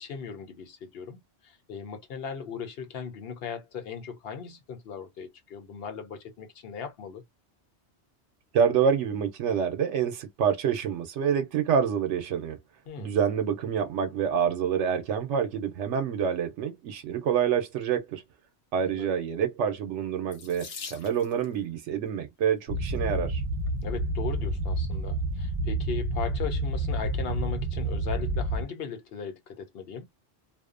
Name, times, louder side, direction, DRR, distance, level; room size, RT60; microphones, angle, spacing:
voice 1, 0.0-7.2 12.9-13.2 18.8-19.1 23.8-30.1, left 6 dB, 60° left, 0.9 m, -38 dB
voice 2, 8.5-12.6 13.0-18.2 18.7-23.4, right 7 dB, 90° right, 0.9 m, -27 dB
Water tap faucet / Sink (filling or washing), 20.3-21.5 22.6-23.0 23.7-23.8 24.1-24.2, left 5 dB, 90° left, 1.1 m, -43 dB
sound 1, 22.7-28.6, right 1 dB, 45° right, 0.7 m, -29 dB
2.6 x 2.1 x 2.4 m
omnidirectional pair, 1.2 m